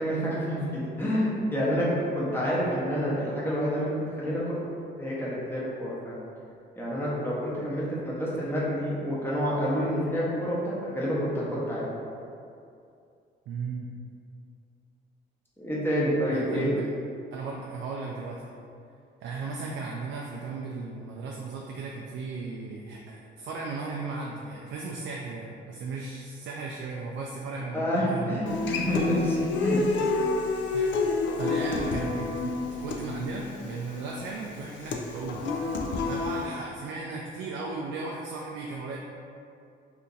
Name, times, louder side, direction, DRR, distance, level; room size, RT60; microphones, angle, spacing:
voice 1, 0.0-4.6 5.0-6.2 6.8-11.9 15.6-16.8 27.7-29.8, equal, 10° left, -7 dB, 0.8 m, -28 dB
voice 2, 13.5-13.9 16.3-16.8 17.3-18.5 19.2-28.4 30.7-31.0 31.3-32.5 32.8-35.5 36.1-39.0, right 4 dB, 80° right, -2 dB, 0.4 m, -36 dB
Human voice / Acoustic guitar, 28.5-36.5, left 3 dB, 70° left, 0.4 m, -29 dB
2.8 x 2.5 x 3.8 m, 2.5 s
cardioid pair, 90°, 20 cm